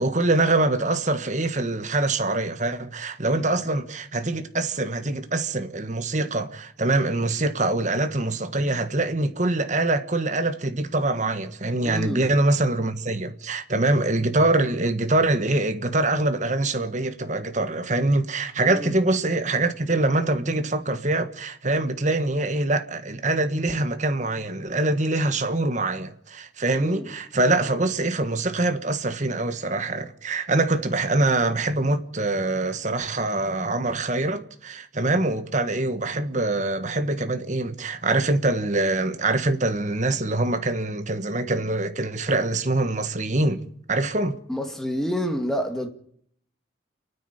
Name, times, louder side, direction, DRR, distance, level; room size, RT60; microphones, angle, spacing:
voice 1, 0.0-43.6 43.9-44.4, right 2 dB, 40° right, 1.5 m, -24 dB
voice 2, 11.8-12.2 18.7-18.9 26.8-27.1 44.5-45.9, equal, ahead, 2.2 m, -28 dB
29.5 x 9.9 x 9.9 m
head